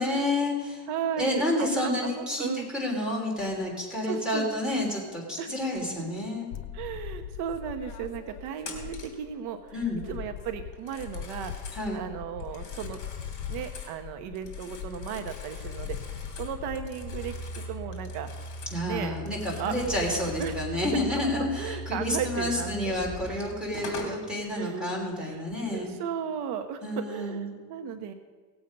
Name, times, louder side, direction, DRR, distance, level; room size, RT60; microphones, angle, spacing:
voice 1, 0.0-0.8 1.2-6.5 9.7-10.0 11.8-12.0 18.7-25.9 26.8-27.5, left 1 dB, ahead, -4 dB, 3.4 m, -30 dB
voice 2, 0.9-2.7 4.0-4.5 5.4-5.5 6.0-6.1 6.7-13.0 13.5-18.3 18.8-19.2 19.6-19.8 20.4-21.0 21.4-23.1 24.5-24.9 25.2-25.4 25.7-28.1, right 8 dB, 70° right, 7 dB, 0.9 m, -35 dB
sound 1, 6.5-9.4 9.7-17.4, left 8 dB, 65° left, 1.0 m, -40 dB
Telephone, 8.6-9.2 10.7-11.9 12.4-14.0 14.4-18.8 19.1-20.7 22.8-22.9 23.5-24.2, left 4 dB, 45° left, 2.5 m, -45 dB
sound 2, 16.9-23.4, right 1 dB, 25° right, 3.7 m, -39 dB
17.5 x 8.0 x 5.3 m, 1.5 s
cardioid pair, 145°, 42 cm